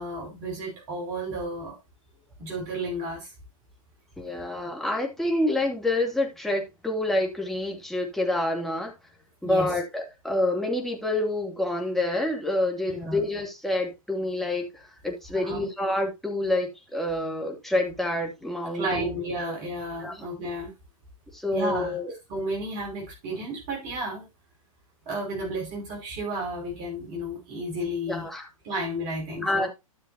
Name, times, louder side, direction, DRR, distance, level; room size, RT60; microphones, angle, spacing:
voice 1, 0.0-1.8 2.4-3.3 9.4-9.7 12.9-13.2 15.3-15.6 18.7-20.7 21.5-22.0 22.3-24.3 25.1-28.3 28.6-29.7, right 1 dB, 40° right, 5.5 m, -32 dB
voice 2, 4.2-8.9 9.4-19.1 20.0-20.3 21.3-22.1 28.1-28.5 29.4-29.7, left 1 dB, ahead, 2.5 m, -27 dB
13.0 x 6.9 x 2.7 m
figure-of-eight pair, 115°, 19 cm